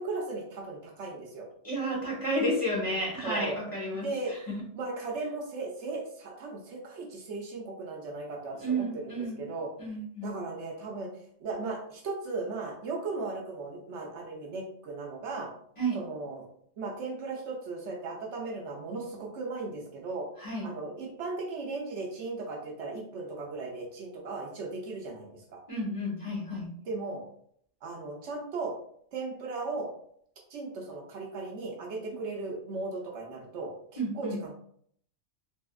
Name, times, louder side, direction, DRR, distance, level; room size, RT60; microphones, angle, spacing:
voice 1, 0.0-1.5 3.2-3.6 3.9-4.3 4.8-9.7 10.2-11.1 11.4-15.5 15.9-16.5 16.8-20.3 20.6-25.4 26.8-27.2 27.8-28.7 29.1-29.9 30.5-34.6, right 3 dB, 70° right, 0 dB, 0.9 m, -37 dB
voice 2, 1.6-4.6 8.6-9.4 9.8-10.3 15.8-16.0 20.4-20.7 25.7-26.7 34.0-34.4, right 1 dB, 25° left, -6 dB, 1.1 m, -31 dB
3.5 x 2.8 x 2.3 m, 0.65 s
omnidirectional pair, 1.3 m